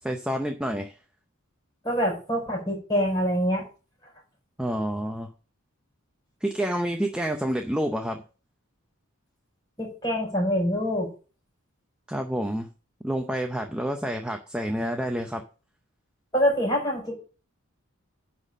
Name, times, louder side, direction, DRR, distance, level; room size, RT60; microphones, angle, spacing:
voice 1, 0.0-0.9 4.6-5.3 6.4-8.2 12.1-12.7 13.0-15.4, equal, 5° right, 4 dB, 0.6 m, -28 dB
voice 2, 1.8-3.7 9.8-11.1 16.3-17.1, equal, 20° left, 0 dB, 4.9 m, -25 dB
10.5 x 4.2 x 7.3 m, 0.36 s
head